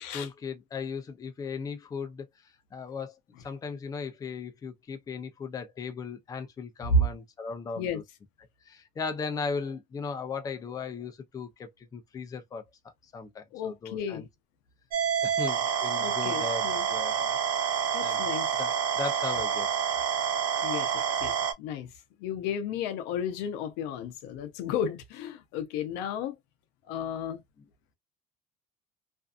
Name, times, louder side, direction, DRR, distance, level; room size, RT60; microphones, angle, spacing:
voice 1, 0.0-2.3 2.7-3.1 3.4-8.0 8.7-12.6 13.1-14.3 15.2-17.3 18.0-18.3 18.6-19.8, left 5 dB, 20° left, 0.5 m, -37 dB
voice 2, 13.5-14.3 16.0-16.9 17.9-18.5 20.6-21.9 22.2-26.4 26.9-27.4, left 3 dB, 80° left, 0.6 m, -32 dB
sound 1, 14.9-21.5, right 8 dB, 60° right, 0.7 m, -28 dB
2.6 x 2.3 x 2.3 m
cardioid pair, 140°, 17 cm